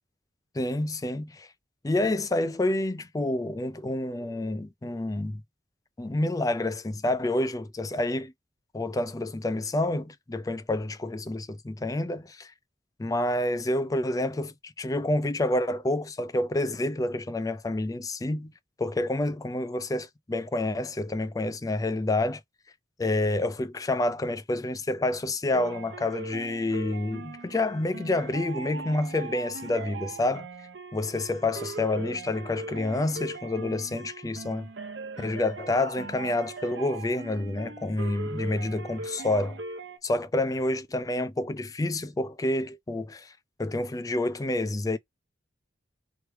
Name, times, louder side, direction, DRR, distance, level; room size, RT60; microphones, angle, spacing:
voice 1, 0.5-1.5 1.8-5.4 6.0-8.3 8.7-12.5 13.0-18.5 18.8-22.4 23.0-30.5 30.9-34.7 35.2-39.6 40.0-43.3 43.6-45.0, left 2 dB, 20° left, 0.4 m, -28 dB
sound 1, 25.5-40.0, right 3 dB, 75° right, 0.8 m, -40 dB
3.2 x 3.1 x 4.4 m
head